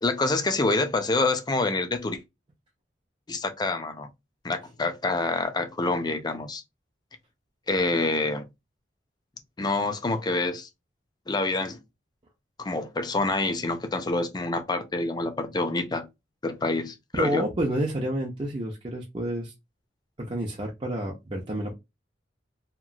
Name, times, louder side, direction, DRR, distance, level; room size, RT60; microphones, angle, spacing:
voice 1, 0.0-2.2 3.3-4.1 4.4-6.6 7.7-8.5 9.6-10.7 11.3-11.8 12.6-16.1 16.4-17.4, left 2 dB, 25° left, 0.5 m, -27 dB
voice 2, 17.1-19.5 20.2-21.7, right 1 dB, 30° right, 0.5 m, -29 dB
2.9 x 2.4 x 2.4 m
head